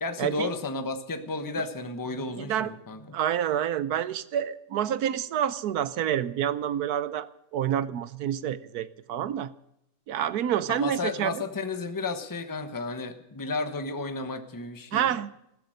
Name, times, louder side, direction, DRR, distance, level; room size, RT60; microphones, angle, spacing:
voice 1, 0.0-3.0 10.7-15.1, left 3 dB, 15° left, 8 dB, 1.0 m, -33 dB
voice 2, 2.4-2.7 3.1-9.5 10.1-11.4 14.9-15.3, right 10 dB, 70° right, 15 dB, 1.2 m, -28 dB
14.0 x 14.0 x 6.4 m, 0.79 s
omnidirectional pair, 1.8 m